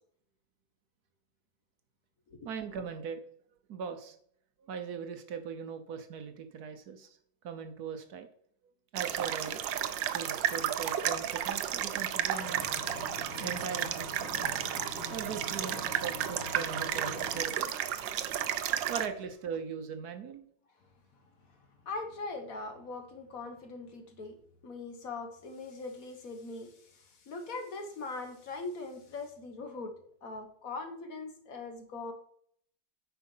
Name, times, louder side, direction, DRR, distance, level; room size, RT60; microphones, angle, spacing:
voice 1, 2.4-3.2 3.7-4.2 4.7-7.2 7.4-8.3 8.9-12.7 13.4-14.5 15.1-17.8 18.9-20.4, right 6 dB, 65° right, 7 dB, 1.2 m, -40 dB
sound 1, 9.0-19.1, right 11 dB, 90° right, 1.4 m, -33 dB
Engine, 12.4-17.4, left 3 dB, 35° left, 2.3 m, -44 dB
voice 2, 21.6-24.4 24.6-32.1, left 3 dB, 55° left, 5 dB, 1.5 m, -41 dB
9.0 x 5.0 x 5.5 m, 0.64 s
omnidirectional pair, 1.9 m